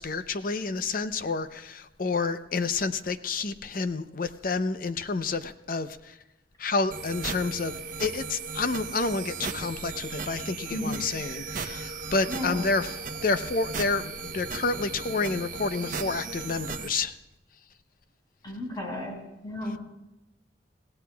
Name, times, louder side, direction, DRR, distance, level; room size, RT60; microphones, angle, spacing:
voice 1, 0.0-6.2 6.6-17.2, left 3 dB, 50° left, 11 dB, 0.6 m, -29 dB
sound 1, 6.9-16.9, right 4 dB, 50° right, 0.9 m, -36 dB
voice 2, 12.3-12.6 18.4-19.2 19.4-19.8, left 1 dB, 25° left, -2 dB, 4.9 m, -33 dB
30.0 x 16.0 x 2.3 m, 0.95 s
head